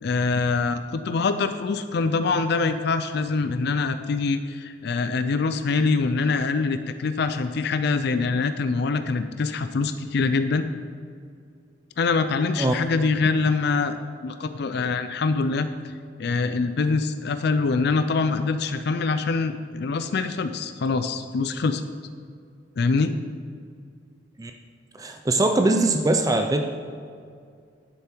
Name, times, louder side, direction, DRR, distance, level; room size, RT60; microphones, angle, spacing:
voice 1, 0.0-10.7 12.0-15.9 16.2-21.8 22.8-23.1, left 4 dB, 65° left, 10 dB, 0.4 m, -24 dB
voice 2, 25.0-26.6, right 2 dB, 20° right, 5 dB, 0.5 m, -21 dB
11.0 x 7.0 x 4.5 m, 2.2 s
head